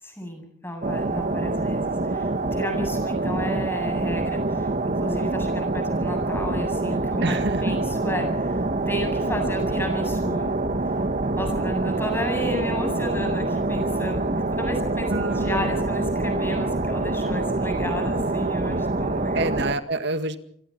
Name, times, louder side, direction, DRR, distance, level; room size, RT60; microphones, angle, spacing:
voice 1, 0.0-10.5 11.4-19.5, equal, 10° left, 4 dB, 7.8 m, -32 dB
sound 1, 0.8-19.7, right 2 dB, 40° right, 1.2 m, -26 dB
voice 2, 7.2-7.8 15.1-15.7 19.3-20.4, right 2 dB, 55° right, 9 dB, 1.9 m, -27 dB
27.0 x 25.0 x 4.4 m, 0.68 s
head